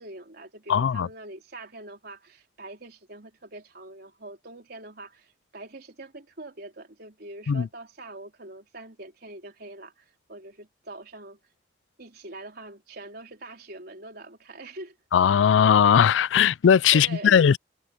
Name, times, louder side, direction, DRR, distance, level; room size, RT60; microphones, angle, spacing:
voice 1, 0.0-11.4 12.0-15.0 16.9-17.5, right 2 dB, 60° right, 4.0 m, -43 dB
voice 2, 0.7-1.1 7.5-7.7 15.1-17.6, left 7 dB, 90° left, 0.4 m, -19 dB
head